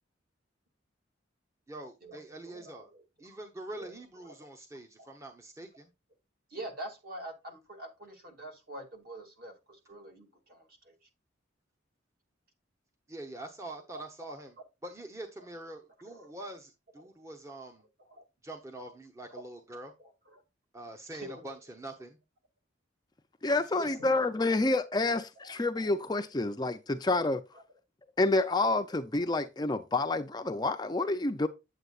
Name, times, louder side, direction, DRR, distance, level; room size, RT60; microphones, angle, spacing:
voice 1, 1.7-2.9 3.2-5.9 13.1-14.5 14.8-17.8 18.4-19.9 20.7-22.2 23.6-24.0, right 1 dB, 15° right, 0.9 m, -44 dB
voice 2, 2.5-3.0 3.3-3.4 3.7-3.9 4.2-4.3 6.5-11.0 16.0-16.3 18.1-18.2 19.3-19.4 20.0-20.4 21.1-21.5 23.9-24.1 25.4-25.6, right 1 dB, 50° right, 2.6 m, -45 dB
voice 3, 23.4-27.4 28.2-31.5, left 2 dB, 20° left, 0.5 m, -28 dB
9.1 x 7.9 x 2.4 m
head